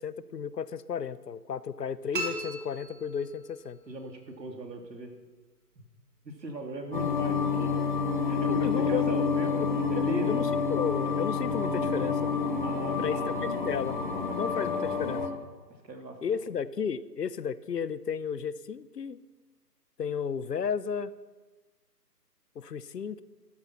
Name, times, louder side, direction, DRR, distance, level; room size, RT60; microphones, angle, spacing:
voice 1, 0.0-3.8 8.5-9.2 9.6-12.3 13.0-13.2 13.7-14.0 14.3-15.2 16.2-19.2 20.0-21.1 22.6-23.2, left 7 dB, 75° left, 17 dB, 0.8 m, -33 dB
sound 1, 2.1-3.7, right 1 dB, 30° right, 2.0 m, -37 dB
voice 2, 3.9-5.1 5.8-5.9 6.2-7.8 8.2-10.4 12.6-13.7 14.1-14.4 14.8-15.3 15.8-16.2, right 2 dB, 80° right, 3 dB, 2.8 m, -39 dB
sound 2, 6.9-15.3, left 5 dB, 30° left, 1.3 m, -28 dB
13.0 x 13.0 x 5.9 m, 1.3 s
hypercardioid pair, 165°, 49 cm